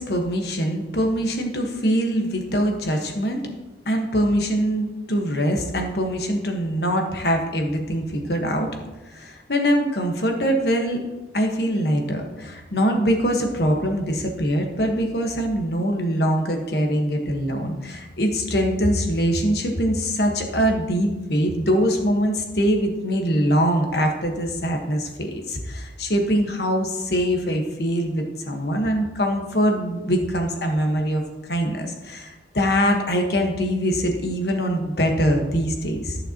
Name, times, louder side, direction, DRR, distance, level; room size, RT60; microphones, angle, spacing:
voice 1, 0.0-3.4 3.8-8.7 9.1-11.0 11.3-31.2 31.5-36.2, equal, 60° left, 3 dB, 1.4 m, -23 dB
14.0 x 6.7 x 3.0 m, 1.1 s
head